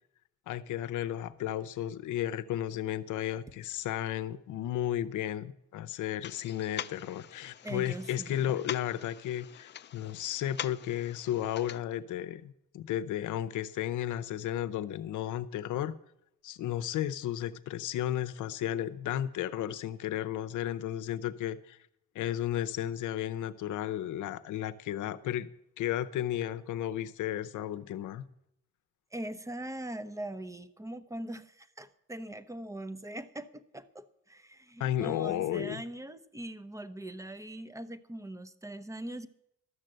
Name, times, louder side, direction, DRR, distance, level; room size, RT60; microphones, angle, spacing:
voice 1, 0.5-15.9 16.4-21.8 22.1-25.5 25.8-28.2 34.8-35.8, left 11 dB, 80° left, 12 dB, 0.7 m, -33 dB
sound 1, 6.2-11.8, left 10 dB, 35° left, 0.4 m, -44 dB
voice 2, 7.6-8.5 29.1-39.3, right 1 dB, 10° right, 13 dB, 0.8 m, -41 dB
12.5 x 6.6 x 7.7 m, 0.77 s
cardioid pair, 90°, 30 cm